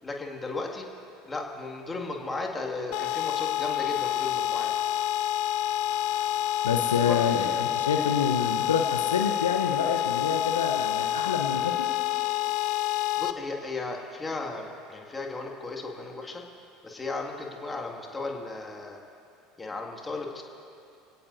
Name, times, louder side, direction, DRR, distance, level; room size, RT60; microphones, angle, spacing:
voice 1, 0.0-0.9 1.2-4.7 7.0-7.7 13.2-16.4 16.8-19.0 19.6-20.4, left 3 dB, 15° left, 1 dB, 2.2 m, -35 dB
sound 1, 2.9-13.3, left 12 dB, 55° left, 0.5 m, -28 dB
voice 2, 6.6-11.7, left 6 dB, 75° left, 4 dB, 0.9 m, -27 dB
28.5 x 17.5 x 2.7 m, 2.6 s
figure-of-eight pair, 70°, 0 cm